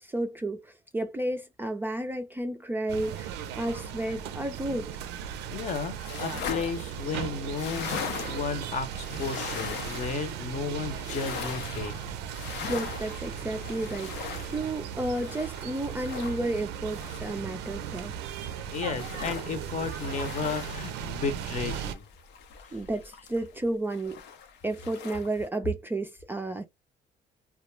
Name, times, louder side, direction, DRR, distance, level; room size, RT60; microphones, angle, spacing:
voice 1, 0.0-4.9 12.7-18.1 22.7-24.2 24.6-26.6, right 1 dB, 10° right, 0.3 m, -32 dB
sound 1, 2.9-22.0, right 9 dB, 85° right, 0.4 m, -37 dB
voice 2, 5.5-12.0 18.7-22.0 22.6-22.7, left 5 dB, 45° left, 0.7 m, -33 dB
sound 2, 5.7-17.9 18.3-23.6 23.9-25.5, left 7 dB, 85° left, 0.6 m, -40 dB
2.3 x 2.0 x 3.1 m
cardioid pair, 110°, 17 cm